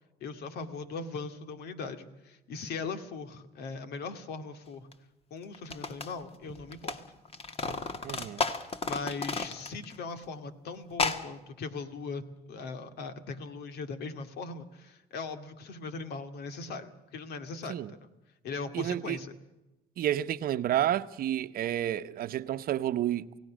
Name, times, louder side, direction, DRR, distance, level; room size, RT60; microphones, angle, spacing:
voice 1, 0.2-4.9 5.3-7.0 7.6-7.9 8.8-18.1 18.4-19.3, left 4 dB, 70° left, 2.2 m, -39 dB
sound 1, 4.9-5.0 5.5-7.0 7.2-10.0 10.2-10.3 10.9-11.3, left 4 dB, 35° left, 1.8 m, -33 dB
voice 2, 8.0-8.4 17.7-17.9 18.7-19.2 20.0-23.4, right 12 dB, 60° right, 0.9 m, -30 dB
28.5 x 17.5 x 6.3 m
cardioid pair, 110°, 17 cm